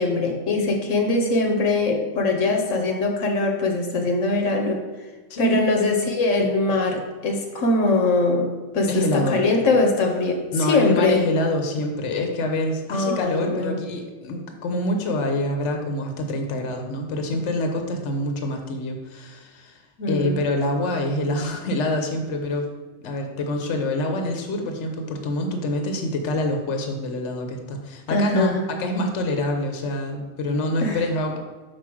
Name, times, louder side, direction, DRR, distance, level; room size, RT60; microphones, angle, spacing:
voice 1, 0.0-4.8 5.4-11.3 12.9-13.8 20.0-20.4 28.1-28.6 30.8-31.0, left 3 dB, 85° left, 3 dB, 1.2 m, -22 dB
voice 2, 8.9-9.4 10.5-19.8 20.1-22.7 23.0-31.4, left 1 dB, 70° left, 4 dB, 1.2 m, -26 dB
4.8 x 4.8 x 6.0 m, 1.3 s
omnidirectional pair, 1.3 m